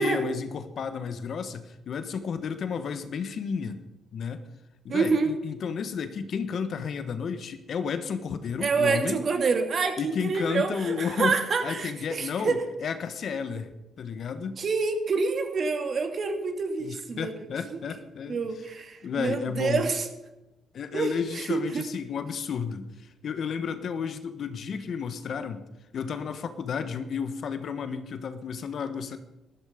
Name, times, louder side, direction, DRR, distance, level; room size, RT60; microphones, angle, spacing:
voice 1, 0.0-3.8 4.1-4.4 4.8-9.2 10.0-11.3 11.6-12.5 12.8-13.7 14.0-14.6 16.8-18.4 19.0-19.8 20.7-25.6 25.9-29.2, left 6 dB, 60° left, 10 dB, 1.3 m, -32 dB
voice 2, 4.9-5.4 8.6-12.6 14.6-17.5 17.7-17.8 18.3-20.1 20.9-21.8, right 4 dB, 50° right, 6 dB, 2.4 m, -27 dB
13.5 x 13.0 x 5.2 m, 0.95 s
cardioid pair, 90°, 0 cm